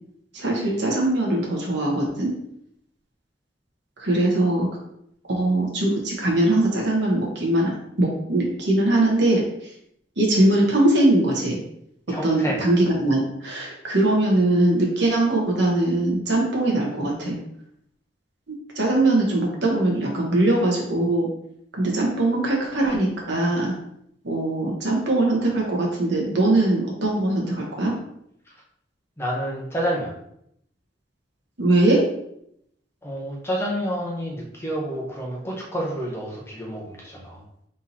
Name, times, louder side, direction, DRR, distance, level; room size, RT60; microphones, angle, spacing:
voice 1, 0.3-2.3 4.0-4.7 5.3-7.7 8.0-9.4 10.2-11.6 12.2-17.4 18.7-21.3 21.7-23.7 24.2-27.9 31.6-32.0, right 1 dB, 80° right, -2 dB, 1.3 m, -21 dB
voice 2, 12.1-12.6 29.2-30.1 33.0-37.4, equal, 15° left, -3 dB, 0.9 m, -29 dB
4.1 x 3.6 x 2.9 m, 0.74 s
head